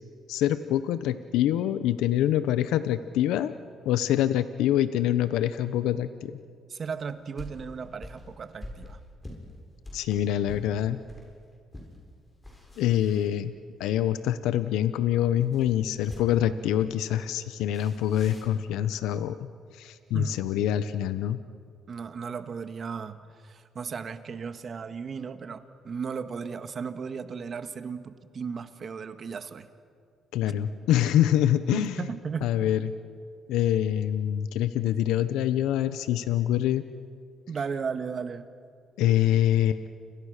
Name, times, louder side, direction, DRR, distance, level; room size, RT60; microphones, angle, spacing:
voice 1, 0.3-3.5 3.8-6.4 9.9-11.0 12.8-13.5 13.8-19.4 19.7-21.4 30.3-32.0 32.4-32.9 33.5-36.8 39.0-39.9, left 11 dB, 90° left, 12 dB, 0.9 m, -25 dB
voice 2, 6.7-9.0 20.1-20.4 21.9-29.7 31.7-32.7 37.5-38.4, right 6 dB, 45° right, 9 dB, 1.7 m, -35 dB
sound 1, 6.8-11.3 11.7-12.0 12.3-13.8 15.4-16.6 17.7-18.6, left 1 dB, 15° left, 7.6 m, -45 dB
29.5 x 26.5 x 6.6 m, 2.3 s
cardioid pair, 90°, 0 cm